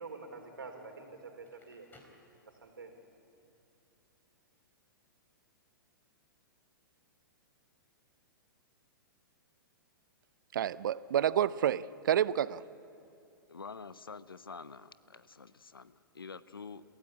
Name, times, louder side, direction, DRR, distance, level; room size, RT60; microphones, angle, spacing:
voice 1, 0.0-1.9 2.5-3.0, right 4 dB, 80° right, 4 dB, 3.8 m, -47 dB
Crackle, 1.4-3.0, left 1 dB, 15° left, 4.5 m, -62 dB
voice 2, 10.5-12.6, right 10 dB, 65° right, 19 dB, 0.6 m, -29 dB
voice 3, 13.5-16.8, left 5 dB, 85° left, 15 dB, 0.9 m, -47 dB
29.5 x 16.0 x 8.6 m, 2.8 s
hypercardioid pair, 115°, 12 cm